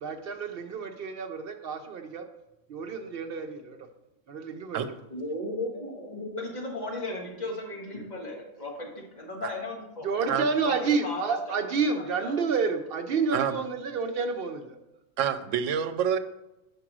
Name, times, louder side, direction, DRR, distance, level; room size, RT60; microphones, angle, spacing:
voice 1, 0.0-2.3 2.7-3.8 4.3-4.8 10.0-14.8, right 5 dB, 60° right, 7 dB, 0.7 m, -29 dB
voice 2, 5.1-10.3 10.6-11.4 11.9-12.3, left 2 dB, 35° left, -1 dB, 1.6 m, -36 dB
voice 3, 15.2-16.2, right 8 dB, 85° right, 11 dB, 0.9 m, -27 dB
5.3 x 4.8 x 6.1 m, 0.95 s
omnidirectional pair, 1.3 m